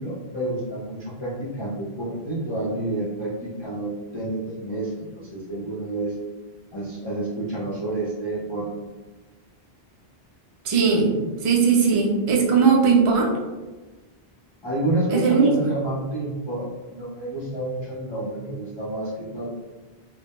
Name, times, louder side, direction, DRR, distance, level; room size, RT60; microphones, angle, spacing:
voice 1, 0.0-6.1 6.7-8.7 14.6-19.5, right 1 dB, 35° left, -10 dB, 0.5 m, -29 dB
voice 2, 10.6-11.1 11.4-13.4 15.1-15.5, right 5 dB, 55° right, -2 dB, 0.3 m, -18 dB
2.2 x 2.0 x 2.8 m, 1.2 s
omnidirectional pair, 1.1 m